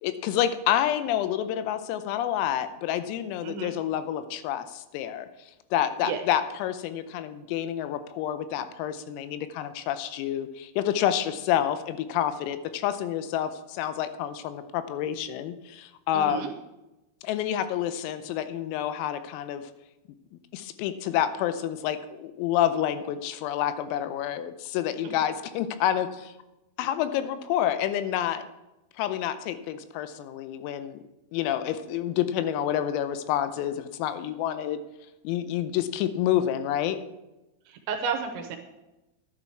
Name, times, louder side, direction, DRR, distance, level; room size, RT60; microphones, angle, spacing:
voice 1, 0.0-5.3 5.7-16.5 17.2-19.7 20.3-26.3 26.8-28.4 29.0-31.0 31.3-34.8 35.2-37.0, left 11 dB, 85° left, 11 dB, 3.5 m, -28 dB
voice 2, 3.4-3.7 6.0-6.2 16.1-16.5 25.0-25.1 37.7-38.6, right 6 dB, 80° right, 5 dB, 2.8 m, -32 dB
11.0 x 11.0 x 4.6 m, 1.0 s
omnidirectional pair, 5.9 m